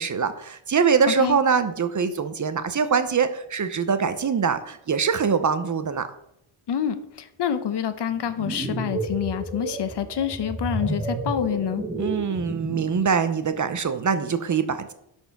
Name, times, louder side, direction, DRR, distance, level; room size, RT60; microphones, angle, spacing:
voice 1, 0.0-6.1 12.0-14.9, right 6 dB, 40° right, 10 dB, 0.7 m, -23 dB
voice 2, 1.1-1.4 6.7-11.8, left 9 dB, 55° left, 10 dB, 0.8 m, -27 dB
sound 1, 8.2-13.0, right 1 dB, 15° right, 1.0 m, -31 dB
11.0 x 4.5 x 5.8 m, 0.79 s
wide cardioid pair, 165°, 49 cm